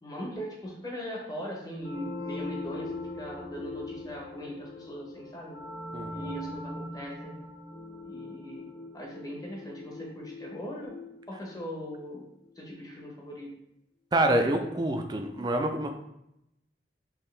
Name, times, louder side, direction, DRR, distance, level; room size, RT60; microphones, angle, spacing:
voice 1, 0.0-5.6 6.1-7.3 8.0-8.7 8.9-10.9 11.3-12.3 12.6-13.5, equal, 20° left, -2 dB, 0.9 m, -40 dB
sound 1, 1.8-12.2, left 2 dB, 45° left, 0.8 m, -41 dB
voice 2, 5.9-6.2 14.1-15.9, right 1 dB, 25° right, 4 dB, 0.4 m, -26 dB
4.5 x 2.9 x 3.2 m, 0.82 s
head